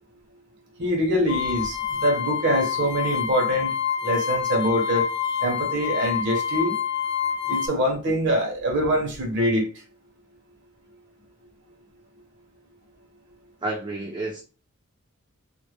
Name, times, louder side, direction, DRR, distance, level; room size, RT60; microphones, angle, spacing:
voice 1, 0.8-3.7 4.0-5.1 5.4-6.7 7.5-9.7, equal, 55° right, 0.7 m, -24 dB
sound 1, 1.3-7.7, left 8 dB, 55° left, 0.6 m, -27 dB
voice 2, 13.6-14.4, right 2 dB, 25° right, 0.4 m, -30 dB
2.1 x 2.1 x 3.0 m
head